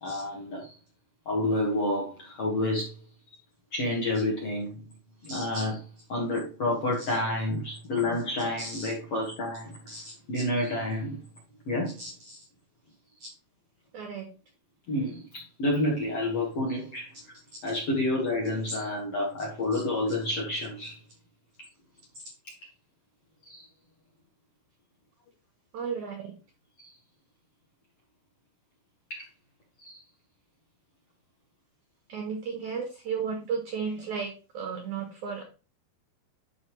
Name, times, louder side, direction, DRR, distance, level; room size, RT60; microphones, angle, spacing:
voice 1, 0.0-0.7 1.2-2.9 3.7-4.7 5.2-5.8 6.1-9.7 10.3-11.2 11.7-11.9 14.9-17.1 17.6-20.9 23.4-23.6 26.8-26.9 29.1-29.2 29.8-30.0, left 1 dB, 55° left, 1.7 m, -29 dB
voice 2, 5.3-5.6 7.0-7.1 8.6-8.9 9.9-10.4 12.0-12.5 13.2-13.3 13.9-14.3 18.7-18.8 19.7-20.1 25.7-26.3 32.1-35.4, right 5 dB, 90° right, 1.7 m, -35 dB
11.0 x 4.1 x 3.1 m
omnidirectional pair, 5.0 m